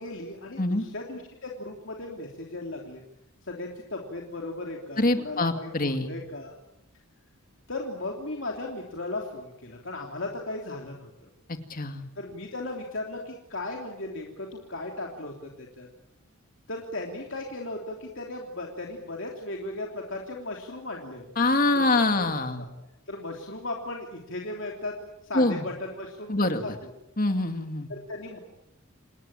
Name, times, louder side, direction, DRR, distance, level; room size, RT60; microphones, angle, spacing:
voice 1, 0.0-3.0 3.4-6.5 7.7-11.1 12.2-15.9 16.7-21.3 21.7-22.7 23.1-24.9 25.2-26.9 27.9-28.4, left 2 dB, 60° left, 0 dB, 3.2 m, -36 dB
voice 2, 5.0-6.2 11.7-12.1 21.4-22.6 25.3-25.7 26.3-26.6 27.2-27.9, left 2 dB, 40° left, 7 dB, 2.4 m, -25 dB
28.5 x 20.0 x 9.0 m, 0.88 s
head